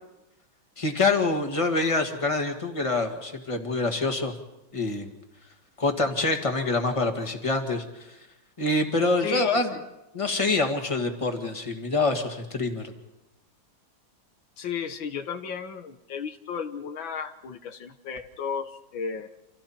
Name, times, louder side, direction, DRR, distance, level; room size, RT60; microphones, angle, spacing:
voice 1, 0.8-4.3 4.7-5.1 5.8-8.2 8.6-9.7 10.1-12.9, left 3 dB, 15° left, 4 dB, 2.0 m, -26 dB
voice 2, 9.2-9.8 14.6-19.3, left 6 dB, 80° left, 7 dB, 1.9 m, -34 dB
29.5 x 27.0 x 4.4 m, 0.95 s
omnidirectional pair, 2.1 m